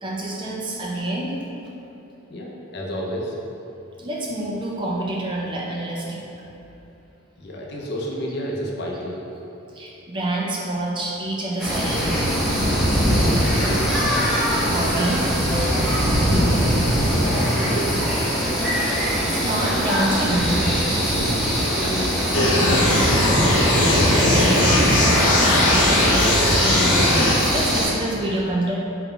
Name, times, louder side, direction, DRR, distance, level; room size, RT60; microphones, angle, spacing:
voice 1, 0.0-1.3 4.0-6.2 9.7-12.3 14.7-15.3 18.6-18.7 19.2-20.7 21.6-21.7 24.1-25.0 27.4-28.8, right 1 dB, 20° right, -3 dB, 0.3 m, -27 dB
voice 2, 2.3-3.4 7.4-9.2 13.1-13.9 17.1-18.0 21.7-23.5 25.5-26.0 26.4-26.9, equal, 50° left, -3 dB, 0.5 m, -30 dB
sound 1, 11.6-27.9, equal, ahead, 0.7 m, -22 dB
sound 2, 22.3-27.3, left 1 dB, 70° left, 0.8 m, -18 dB
4.1 x 3.9 x 2.2 m, 3.0 s
head